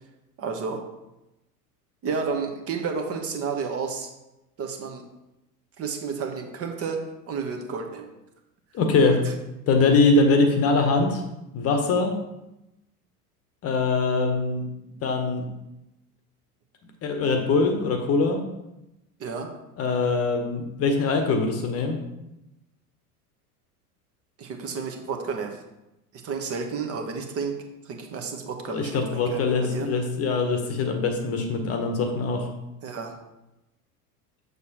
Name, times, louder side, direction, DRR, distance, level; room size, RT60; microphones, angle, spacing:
voice 1, 0.4-0.8 2.0-4.1 4.6-5.0 5.8-7.0 7.3-8.1 9.1-9.3 19.2-19.5 24.4-25.6 26.2-27.5 27.8-29.4 29.7-29.9 32.8-33.2, right 5 dB, 30° right, 4 dB, 1.0 m, -31 dB
voice 2, 8.7-9.2 9.7-11.2 11.5-12.2 13.6-14.6 15.0-15.5 17.0-18.4 19.8-22.0 28.7-32.5, left 3 dB, 30° left, 5 dB, 1.0 m, -22 dB
6.7 x 6.4 x 2.9 m, 0.94 s
figure-of-eight pair, 80°, 46 cm